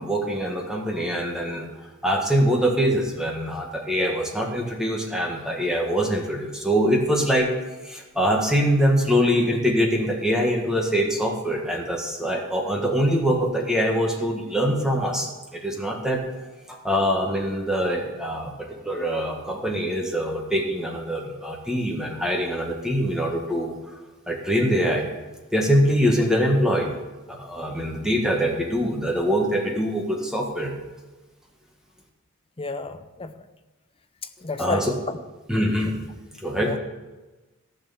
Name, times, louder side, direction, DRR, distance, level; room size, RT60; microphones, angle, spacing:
voice 1, 0.0-1.7 2.0-7.5 7.8-16.2 16.7-23.7 24.3-25.1 25.5-26.9 27.3-30.7 34.6-34.9 35.5-36.0 36.4-36.7, equal, 5° right, -1 dB, 1.7 m, -23 dB
voice 2, 32.6-33.4 34.4-35.2 36.6-36.8, left 3 dB, 25° left, 9 dB, 0.7 m, -31 dB
15.0 x 6.5 x 7.2 m, 1.2 s
head